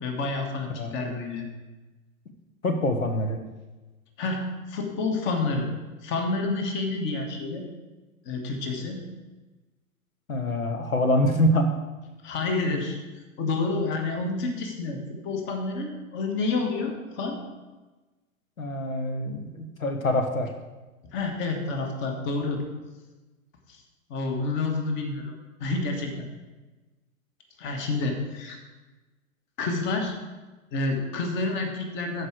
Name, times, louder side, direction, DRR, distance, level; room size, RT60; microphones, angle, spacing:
voice 1, 0.0-1.5 4.2-5.7 6.0-7.6 8.2-9.0 12.2-13.0 13.4-15.0 15.2-17.4 21.1-22.6 23.7-23.8 24.1-25.3 25.6-26.3 27.6-28.6 29.6-30.1 30.7-32.3, left 3 dB, 30° left, 4 dB, 1.3 m, -29 dB
voice 2, 2.6-3.4 10.3-11.7 18.6-20.5, left 1 dB, 80° left, 5 dB, 1.0 m, -25 dB
12.5 x 4.9 x 4.6 m, 1.2 s
figure-of-eight pair, 100°, 41 cm